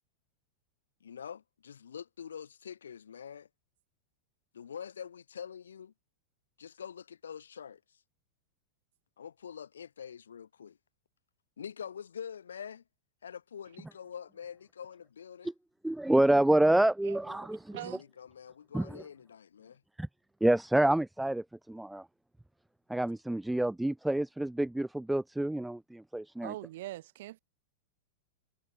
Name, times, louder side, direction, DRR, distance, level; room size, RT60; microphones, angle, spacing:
voice 1, 1.0-3.5 4.5-5.9 6.6-7.8 9.2-10.8 11.6-12.8 13.2-15.5 17.8-19.8, left 7 dB, 70° left, 0.8 m, -45 dB
voice 2, 15.8-17.8 18.7-19.0 20.0-20.1 20.4-22.1 22.9-26.5, right 1 dB, 5° right, 0.3 m, -28 dB
voice 3, 17.0-18.0 26.4-27.4, right 16 dB, 55° right, 0.9 m, -43 dB
figure-of-eight pair, 90°, 0 cm